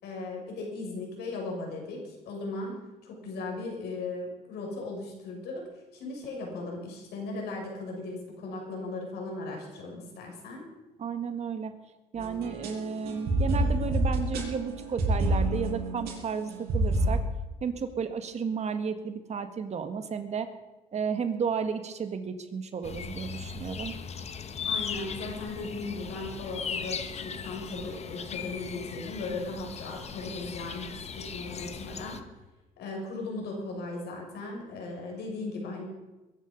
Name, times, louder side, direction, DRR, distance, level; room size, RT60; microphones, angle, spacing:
voice 1, 0.0-5.6 5.9-10.6 24.6-32.2 32.8-35.9, left 2 dB, 75° left, 0 dB, 6.4 m, -37 dB
voice 2, 11.0-11.8 12.1-17.2 17.6-20.5 20.9-23.9, right 6 dB, 40° right, 9 dB, 1.7 m, -33 dB
sound 1, 12.2-17.2, right 1 dB, 70° right, 7.2 m, -28 dB
sound 2, 22.8-32.2, left 6 dB, 40° left, 1.3 m, -38 dB
21.5 x 11.5 x 5.3 m, 1.1 s
cardioid pair, 110°, 17 cm